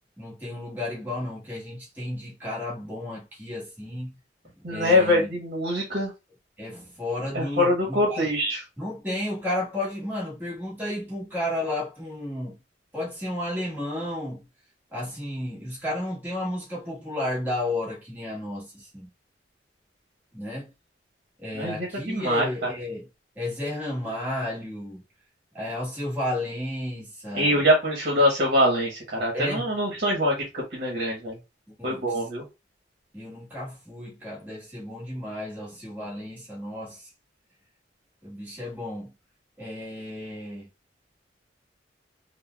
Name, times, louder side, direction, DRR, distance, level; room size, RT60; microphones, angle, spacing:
voice 1, 0.2-4.2 4.4-5.3 6.6-8.3 8.8-12.6 12.9-14.5 14.9-19.1 20.3-20.7 21.4-23.1 23.4-25.0 25.5-27.7 29.3-29.7 31.8-32.3 33.1-37.1 38.2-39.1 39.6-40.7, left 1 dB, 10° right, 1.2 m, -33 dB
voice 2, 4.6-6.1 7.3-8.6 21.5-22.5 27.3-31.4 31.8-32.4, left 1 dB, 50° right, 1.0 m, -24 dB
4.1 x 2.1 x 2.2 m
head